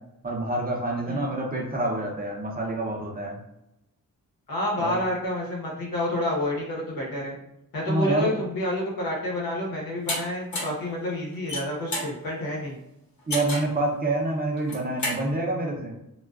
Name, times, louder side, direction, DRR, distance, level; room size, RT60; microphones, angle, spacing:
voice 1, 0.2-3.4 4.8-5.0 7.9-8.3 13.3-16.0, right 2 dB, 25° right, -1 dB, 0.6 m, -27 dB
voice 2, 4.5-7.4 7.7-12.8, left 1 dB, 80° left, -3 dB, 0.9 m, -29 dB
sound 1, 10.1-10.2 10.5-10.8 11.3-12.1 13.3-13.7 14.6-15.2, left 1 dB, 55° left, 0.9 m, -30 dB
2.3 x 2.3 x 2.3 m, 0.85 s
cardioid pair, 90°, 35 cm